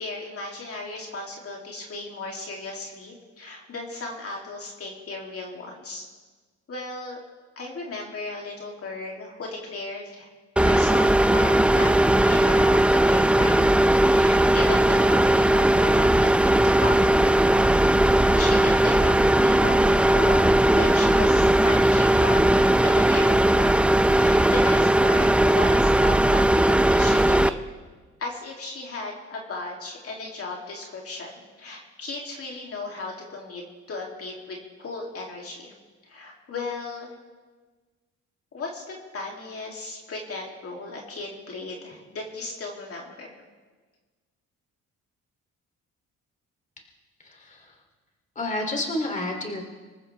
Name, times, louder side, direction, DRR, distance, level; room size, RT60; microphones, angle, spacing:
voice 1, 0.0-6.1 6.7-7.2 7.6-10.3 10.6-13.7 14.0-17.4 17.8-23.7 24.0-27.6 28.2-35.7 36.0-37.2 38.5-43.4, left 2 dB, 50° left, -1 dB, 2.8 m, -36 dB
sound 1, 10.6-27.5, right 1 dB, 5° right, 0.5 m, -18 dB
voice 2, 47.2-47.8 48.3-49.6, left 1 dB, 25° left, 2 dB, 2.9 m, -30 dB
25.5 x 14.5 x 3.4 m, 1.4 s
cardioid pair, 90°, 30 cm